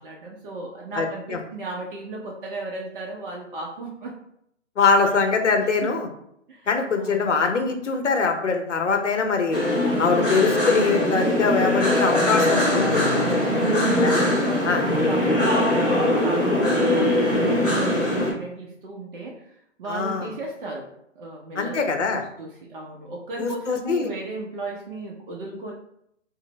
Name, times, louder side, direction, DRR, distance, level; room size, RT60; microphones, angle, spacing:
voice 1, 0.0-4.2 5.8-5.9 6.5-6.7 7.0-7.4 13.5-20.9 21.2-25.7, right 2 dB, 45° right, -2 dB, 0.6 m, -35 dB
voice 2, 4.8-6.1 6.7-9.6 10.0-13.3 14.0-14.2 14.6-14.8 19.9-20.3 21.6-22.2 23.4-24.1, left 4 dB, 75° left, 3 dB, 0.8 m, -23 dB
sound 1, 9.5-18.3, left 1 dB, ahead, 0.6 m, -21 dB
4.0 x 2.1 x 3.1 m, 0.74 s
figure-of-eight pair, 130°, 37 cm